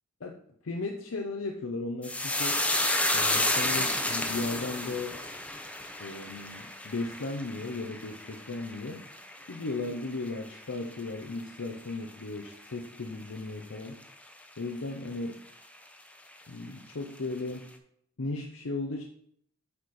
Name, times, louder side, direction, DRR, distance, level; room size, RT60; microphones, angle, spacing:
voice 1, 0.2-2.6 3.1-5.2 6.0-9.1 9.5-14.0 14.6-15.4 16.5-17.7 18.2-19.0, left 3 dB, 85° left, 2 dB, 0.7 m, -36 dB
sound 1, 2.0-10.6 10.9-11.6 11.9-12.1, left 1 dB, 5° left, 0.6 m, -31 dB
8.7 x 4.3 x 4.8 m, 0.68 s
head